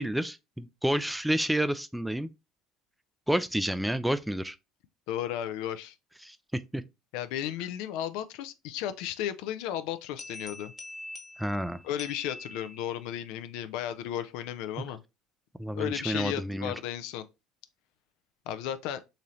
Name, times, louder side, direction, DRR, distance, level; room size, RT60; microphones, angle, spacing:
voice 1, 0.0-2.3 3.3-4.6 6.2-6.4 6.7-6.8 11.4-11.8 15.6-16.7, right 1 dB, 5° right, 0.3 m, -29 dB
voice 2, 5.1-6.0 7.1-10.7 11.8-15.0 15.7-17.2 18.5-19.0, left 11 dB, 70° left, 0.3 m, -34 dB
sound 1, 10.2-13.1, left 2 dB, 30° left, 1.1 m, -44 dB
3.8 x 2.8 x 3.0 m
hypercardioid pair, 75°, 0 cm